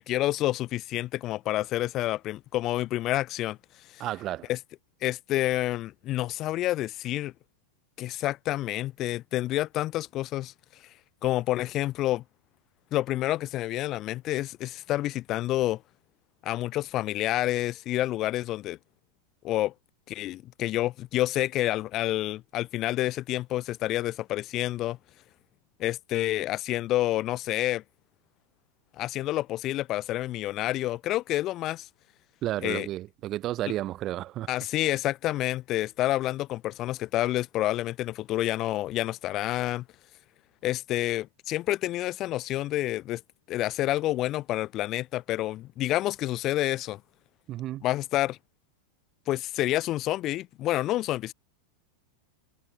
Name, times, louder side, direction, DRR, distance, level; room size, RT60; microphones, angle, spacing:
voice 1, 0.0-3.6 3.9-4.0 4.5-4.6 5.0-7.3 8.0-10.5 11.2-12.2 12.9-15.8 16.4-18.8 19.4-19.7 20.1-25.0 25.8-27.8 29.0-31.9 32.6-32.9 34.5-39.8 40.6-43.2 43.5-47.0 47.8-48.4 49.3-51.3, left 15 dB, 35° left, 0.7 m, -28 dB
voice 2, 4.0-4.5 32.4-34.5 47.5-47.8, right 14 dB, 35° right, 0.3 m, -32 dB
figure-of-eight pair, 90°, 0 cm